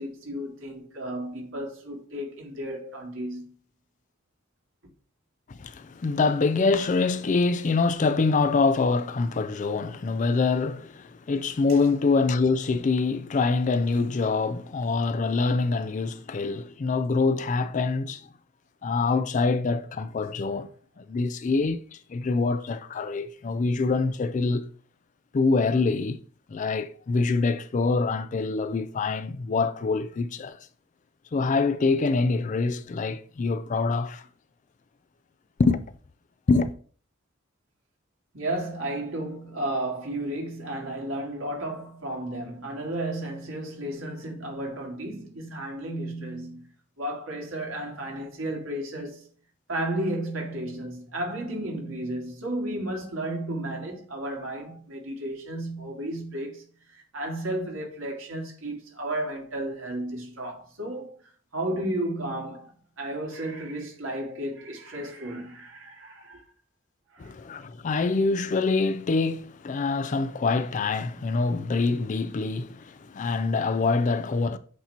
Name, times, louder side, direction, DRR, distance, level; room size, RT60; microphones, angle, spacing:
voice 1, 0.0-3.5 11.7-11.8 38.3-46.7 47.0-49.3 49.7-56.6 56.9-61.1 61.5-62.7 63.0-66.4 67.1-67.3, right 1 dB, 80° right, 1.9 m, -33 dB
voice 2, 5.5-18.3 18.8-20.7 21.0-24.7 25.3-26.2 26.5-30.6 31.3-34.2 35.6-35.8 36.5-36.7 67.2-74.6, left 4 dB, 40° left, 0.4 m, -25 dB
8.1 x 3.0 x 4.2 m
head